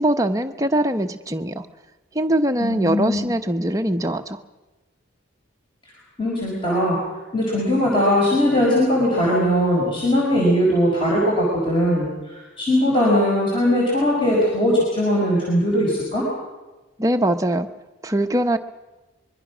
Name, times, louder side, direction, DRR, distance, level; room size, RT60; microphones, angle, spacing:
voice 1, 0.0-1.6 2.1-4.4 17.0-17.7 18.0-18.6, right 1 dB, 15° right, 6 dB, 0.9 m, -22 dB
voice 2, 2.6-3.3 6.2-7.0 7.3-16.2, equal, 25° left, -5 dB, 5.5 m, -20 dB
24.5 x 22.5 x 6.2 m, 1.1 s
head